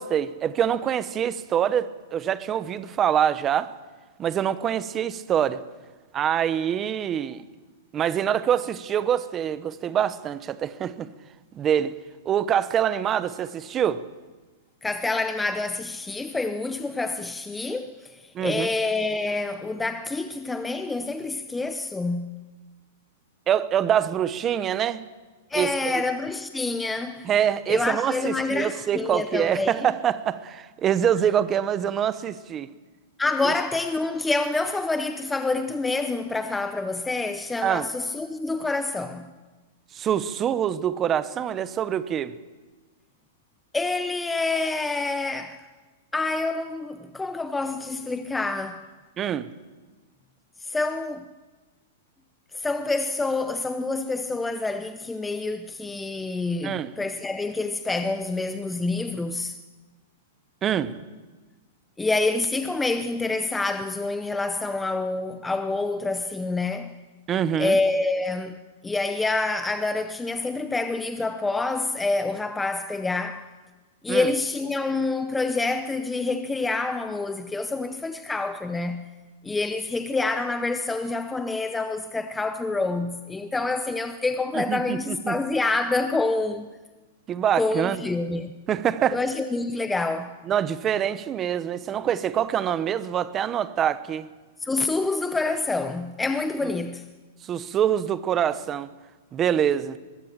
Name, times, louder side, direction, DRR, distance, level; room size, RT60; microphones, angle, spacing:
voice 1, 0.0-3.7 4.2-5.6 6.1-7.4 7.9-11.1 11.5-11.9 12.2-14.0 18.3-18.7 23.5-25.1 25.5-26.0 27.2-32.7 33.4-33.5 37.6-37.9 39.9-42.3 49.2-49.5 56.6-56.9 60.6-61.0 67.3-67.8 74.1-74.3 84.5-85.4 87.3-88.0 88.7-89.2 90.5-94.3 97.4-98.9 99.3-100.0, right 9 dB, 20° right, 0.9 m, -25 dB
voice 2, 14.8-22.4 25.5-27.3 27.7-29.7 33.2-39.3 43.7-45.7 46.1-48.9 50.6-51.3 52.5-59.6 62.0-66.9 67.6-73.5 74.0-79.1 79.4-86.7 87.5-88.5 89.1-90.4 94.6-97.1, left 3 dB, 5° left, 0.7 m, -27 dB
22.5 x 21.0 x 7.5 m
supercardioid pair, 165°, 0 cm